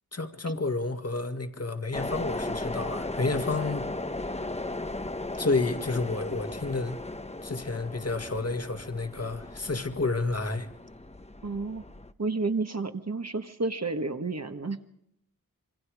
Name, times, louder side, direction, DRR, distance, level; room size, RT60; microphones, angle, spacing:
voice 1, 0.1-4.0 5.4-7.0 7.4-10.7, left 3 dB, 45° left, 2.0 m, -30 dB
sound 1, 1.9-12.1, left 2 dB, 20° left, 0.9 m, -36 dB
voice 2, 11.4-11.9 12.2-14.8, right 3 dB, 50° right, 1.6 m, -31 dB
26.5 x 23.5 x 5.0 m
wide cardioid pair, 65°, 34 cm